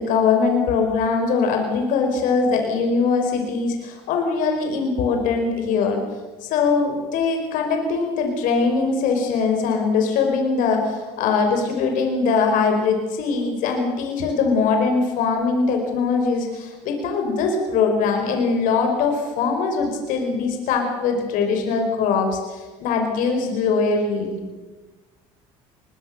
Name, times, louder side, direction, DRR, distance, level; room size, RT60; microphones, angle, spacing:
voice 1, 0.0-6.0 6.4-24.4, left 4 dB, 70° left, 4 dB, 5.1 m, -21 dB
23.5 x 21.0 x 6.7 m, 1.3 s
supercardioid pair, 80°, 14 cm